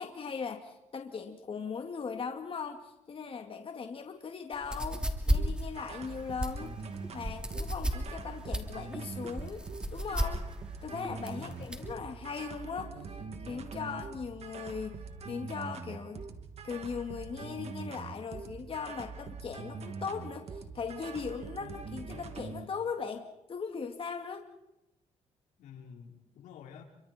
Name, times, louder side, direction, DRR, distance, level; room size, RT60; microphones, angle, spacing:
voice 1, 0.0-6.8 7.1-9.6 9.9-10.4 10.8-12.9 13.5-14.9 15.3-16.2 16.6-24.4, left 5 dB, 45° left, 4 dB, 2.3 m, -39 dB
sound 1, 4.5-11.9, equal, 5° right, 3.0 m, -33 dB
sound 2, 5.3-22.7, right 5 dB, 55° right, 2.5 m, -43 dB
voice 2, 11.3-12.0 25.6-26.8, left 7 dB, 85° left, 2 dB, 4.0 m, -49 dB
29.5 x 24.5 x 4.4 m, 0.91 s
cardioid pair, 80°, 13 cm